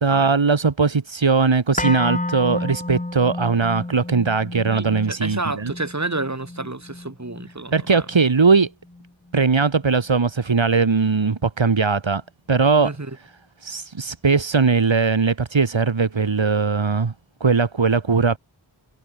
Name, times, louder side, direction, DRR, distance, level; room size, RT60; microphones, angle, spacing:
voice 1, 0.0-5.7 7.7-8.7 9.3-12.2 12.5-12.9 13.6-17.1 17.4-18.4, right 4 dB, 75° right, 2.0 m, -19 dB
sound 1, 1.8-9.8 10.2-10.3, left 2 dB, 15° left, 1.2 m, -32 dB
voice 2, 4.6-8.0 12.8-13.1, right 2 dB, 35° right, 3.4 m, -30 dB
wide cardioid pair, 45°, 45 cm